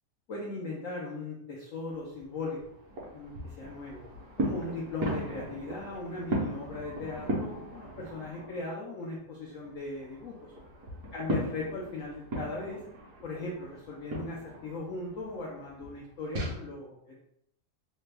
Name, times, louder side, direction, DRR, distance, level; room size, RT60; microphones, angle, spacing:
voice 1, 0.3-2.6 3.1-4.0 4.4-10.5 11.1-12.8 13.2-17.2, left 3 dB, 75° left, -3 dB, 0.7 m, -38 dB
sound 1, 1.9-8.7 9.1-16.6, right 1 dB, 60° right, 1.0 m, -38 dB
3.3 x 2.1 x 3.2 m, 0.75 s
omnidirectional pair, 1.9 m